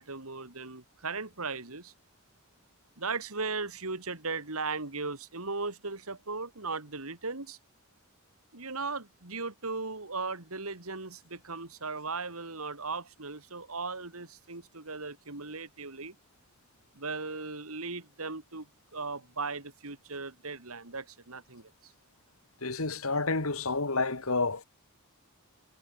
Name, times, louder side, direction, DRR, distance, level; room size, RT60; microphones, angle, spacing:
voice 1, 0.0-1.9 3.0-7.6 8.5-16.1 16.9-18.7 18.9-21.9, right 4 dB, 75° right, 2.9 m, -37 dB
voice 2, 22.6-24.6, left 3 dB, 70° left, 2.3 m, -29 dB
head